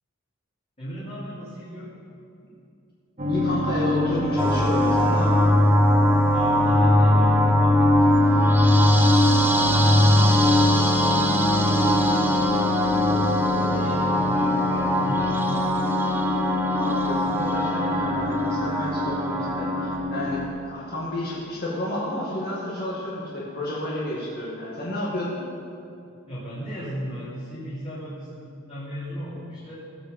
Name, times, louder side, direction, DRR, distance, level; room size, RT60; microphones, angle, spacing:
voice 1, 0.8-1.9 6.3-13.2 13.6-15.6 26.3-29.7, equal, 30° left, -12 dB, 3.5 m, -38 dB
sound 1, 3.2-20.5, left 2 dB, 35° right, 1.8 m, -25 dB
voice 2, 3.3-5.5 16.7-25.4, left 1 dB, 50° left, -6 dB, 2.2 m, -31 dB
sound 2, 4.4-20.0, equal, 10° right, 1.0 m, -21 dB
18.0 x 6.4 x 7.1 m, 2.6 s
head